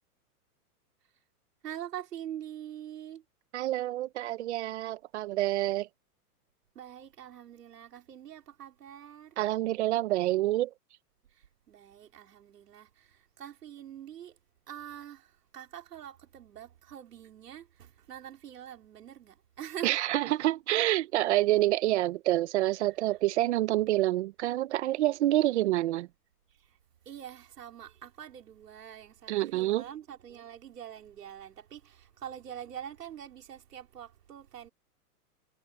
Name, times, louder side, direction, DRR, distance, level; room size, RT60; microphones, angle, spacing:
voice 1, 1.6-3.2 6.7-9.4 11.3-14.4 14.7-20.0 23.1-23.2 26.5-26.8 27.0-34.7, right 10 dB, 90° right, 4.9 m, -45 dB
voice 2, 3.5-5.9 9.4-10.7 19.8-26.1 29.3-29.8, right 15 dB, 45° right, 1.1 m, -27 dB
hypercardioid pair, 165°, 46 cm